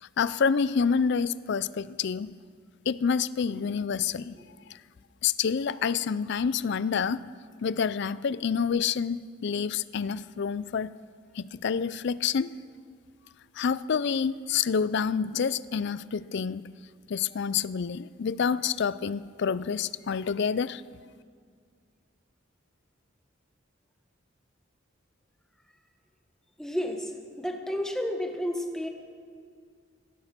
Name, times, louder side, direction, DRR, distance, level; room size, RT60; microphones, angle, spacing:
voice 1, 0.0-2.4 2.9-4.4 4.7-4.8 5.2-7.2 7.6-10.9 11.3-12.5 13.6-16.6 17.1-20.8, left 6 dB, 55° left, 18 dB, 0.4 m, -28 dB
voice 2, 26.6-27.1 27.4-28.9, equal, 5° left, 3 dB, 1.3 m, -31 dB
16.0 x 14.0 x 5.9 m, 2.1 s
head